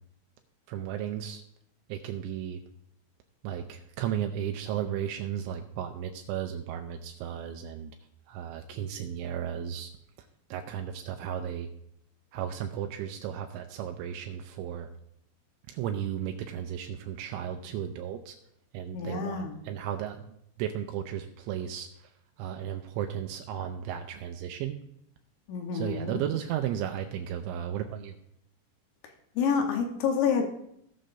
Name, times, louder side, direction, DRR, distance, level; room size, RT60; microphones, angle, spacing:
voice 1, 0.7-1.4 1.9-2.6 3.4-7.9 8.3-9.9 10.2-11.7 12.3-14.9 15.7-18.4 18.7-24.8 25.7-28.2, right 10 dB, 85° right, 4 dB, 2.8 m, -34 dB
voice 2, 18.9-19.6 25.5-26.2 29.4-30.4, left 6 dB, 75° left, 3 dB, 3.0 m, -28 dB
18.5 x 6.4 x 2.6 m, 0.74 s
omnidirectional pair, 5.7 m